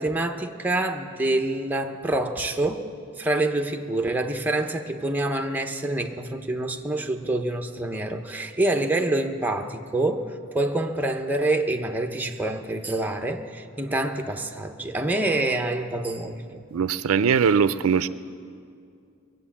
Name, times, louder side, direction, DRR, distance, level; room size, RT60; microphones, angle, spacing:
voice 1, 0.0-2.9 3.2-16.6, right 2 dB, 10° right, 4 dB, 0.7 m, -26 dB
voice 2, 16.7-18.1, right 6 dB, 85° right, 14 dB, 0.4 m, -21 dB
21.5 x 9.0 x 7.2 m, 2.4 s
head